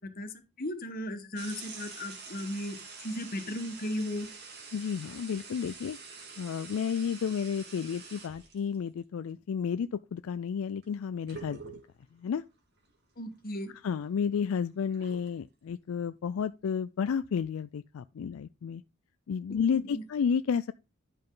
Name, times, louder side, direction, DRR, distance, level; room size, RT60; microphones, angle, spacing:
voice 1, 0.0-4.3 13.2-13.7 19.5-20.0, left 1 dB, 45° left, 1.4 m, -36 dB
sound 1, 1.4-8.8 10.8-10.9 11.3-12.1 12.8-12.9 13.3-15.3, right 4 dB, 50° right, 2.0 m, -47 dB
voice 2, 4.7-6.0 6.4-11.6 12.2-12.4 13.8-18.8 19.3-20.7, left 7 dB, 75° left, 0.3 m, -31 dB
10.5 x 5.4 x 3.9 m
head